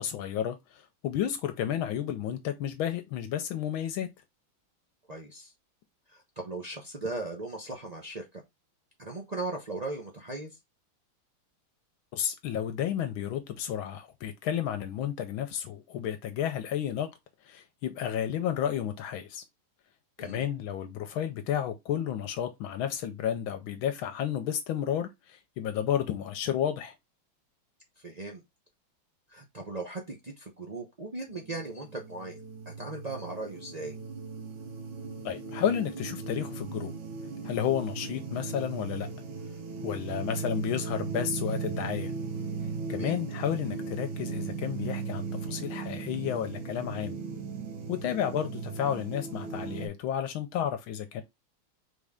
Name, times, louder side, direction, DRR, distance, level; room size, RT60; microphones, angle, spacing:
voice 1, 0.0-4.1 12.1-17.1 17.4-19.4 20.2-26.9 35.2-36.9 37.4-39.1 39.8-42.1 42.9-47.2 47.9-51.2, left 10 dB, 80° left, 1.5 m, -32 dB
voice 2, 5.1-5.5 6.1-8.4 9.0-10.5 20.2-20.5 28.0-28.4 29.3-32.4 32.7-34.0 42.9-43.2, right 2 dB, 65° right, 0.4 m, -38 dB
sound 1, 31.3-49.9, right 5 dB, 80° right, 1.9 m, -37 dB
3.9 x 3.7 x 3.4 m
omnidirectional pair, 2.2 m